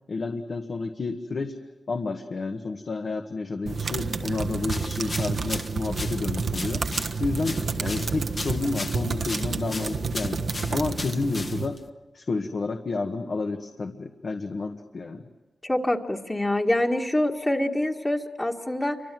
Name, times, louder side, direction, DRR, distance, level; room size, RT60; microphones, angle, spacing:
voice 1, 0.1-1.6 1.9-6.8 7.2-10.4 10.7-11.8 12.1-15.3, left 3 dB, 60° left, 3 dB, 1.7 m, -30 dB
sound 1, 3.7-11.7, right 4 dB, 65° right, 1.3 m, -30 dB
sound 2, 4.6-11.9, left 3 dB, 40° left, 1.5 m, -38 dB
voice 2, 15.6-19.0, left 1 dB, 20° left, 0 dB, 1.9 m, -25 dB
28.5 x 25.0 x 7.8 m, 1.1 s
cardioid pair, 65°, 0 cm